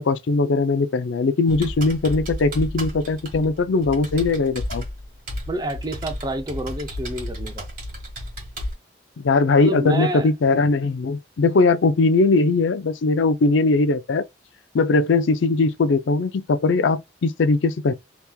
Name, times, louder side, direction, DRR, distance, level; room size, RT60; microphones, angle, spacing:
voice 1, 0.0-4.8 9.2-14.2 14.7-17.9, left 3 dB, 85° left, 0.4 m, -20 dB
Computer keyboard, 1.5-8.7, left 1 dB, 45° right, 1.7 m, -33 dB
voice 2, 5.5-7.7 9.6-10.3, right 1 dB, 20° right, 0.5 m, -28 dB
3.4 x 3.0 x 2.2 m
head